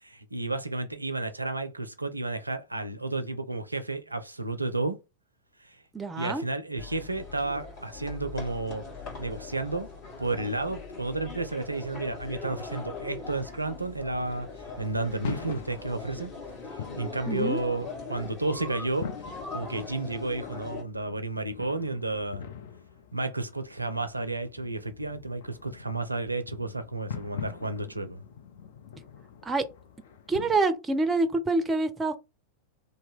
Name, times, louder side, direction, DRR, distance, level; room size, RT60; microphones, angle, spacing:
voice 1, 0.0-5.0 5.6-5.8 6.2-8.8 9.2-9.9 10.2-14.5 14.8-16.3 17.0-19.1 19.5-22.5 23.1-28.2, right 2 dB, 85° right, 0.4 m, -32 dB
voice 2, 5.9-6.4 17.3-17.6 29.4-29.6 30.3-32.2, right 3 dB, 15° right, 0.5 m, -26 dB
sound 1, 6.8-20.8, left 4 dB, 40° left, 1.6 m, -41 dB
sound 2, 13.3-30.6, left 7 dB, 60° left, 0.5 m, -44 dB
2.8 x 2.1 x 3.5 m
figure-of-eight pair, 90°, 0 cm